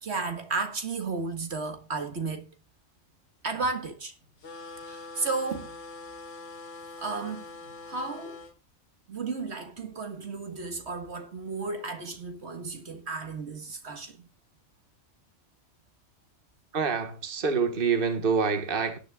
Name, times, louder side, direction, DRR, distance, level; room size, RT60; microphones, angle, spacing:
voice 1, 0.0-2.5 3.4-4.1 4.9-5.8 7.0-7.5 7.9-8.5 9.1-14.3, right 4 dB, 65° right, 1.8 m, -33 dB
sound 1, 4.4-8.5, left 3 dB, 85° left, 1.6 m, -43 dB
voice 2, 16.7-19.0, right 5 dB, 50° right, 1.6 m, -26 dB
18.0 x 10.0 x 2.3 m
omnidirectional pair, 1.2 m